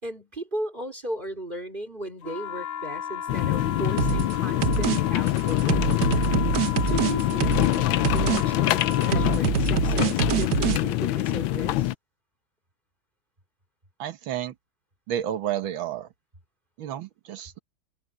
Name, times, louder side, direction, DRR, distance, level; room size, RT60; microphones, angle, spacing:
voice 1, 0.0-5.8 6.9-11.9, right 1 dB, 25° right, 4.1 m, -36 dB
sound 1, 2.2-9.4, left 7 dB, 45° left, 1.2 m, -35 dB
sound 2, 3.3-11.9, left 15 dB, 80° left, 1.4 m, -25 dB
sound 3, 4.0-4.3 4.6-5.0 5.3-7.8 8.0-8.4 8.7-10.8, right 10 dB, 60° right, 1.2 m, -25 dB
voice 2, 14.0-14.5 15.1-16.1 16.8-17.6, right 11 dB, 75° right, 1.9 m, -31 dB
omnidirectional pair, 2.2 m